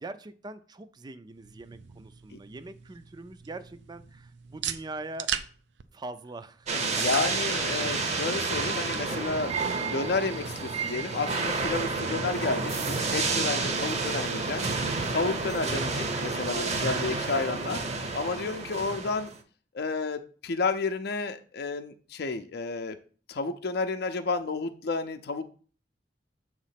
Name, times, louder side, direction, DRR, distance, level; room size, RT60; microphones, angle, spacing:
voice 1, 0.0-5.3 5.9-7.1 15.7-15.9 17.5-17.9, right 2 dB, 25° right, 12 dB, 0.4 m, -42 dB
sound 1, 1.3-15.6, right 8 dB, 90° right, 0.5 m, -43 dB
sound 2, 6.7-19.4, right 3 dB, 40° right, 0.8 m, -30 dB
voice 2, 6.8-14.6 15.1-17.8 18.1-19.3 19.7-23.0 23.3-25.5, left 4 dB, 65° left, 7 dB, 0.5 m, -31 dB
7.3 x 3.1 x 5.7 m, 0.41 s
head